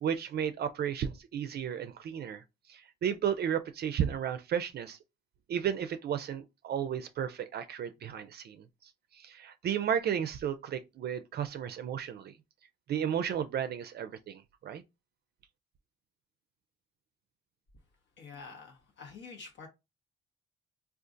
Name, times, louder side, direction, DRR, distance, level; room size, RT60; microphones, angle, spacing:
voice 1, 0.0-2.4 2.7-5.0 5.5-8.6 9.2-12.3 12.9-14.8, right 9 dB, 55° right, 0.4 m, -33 dB
voice 2, 18.2-19.7, left 4 dB, 65° left, 1.0 m, -47 dB
3.7 x 2.3 x 2.5 m
cardioid pair, 90°, 20 cm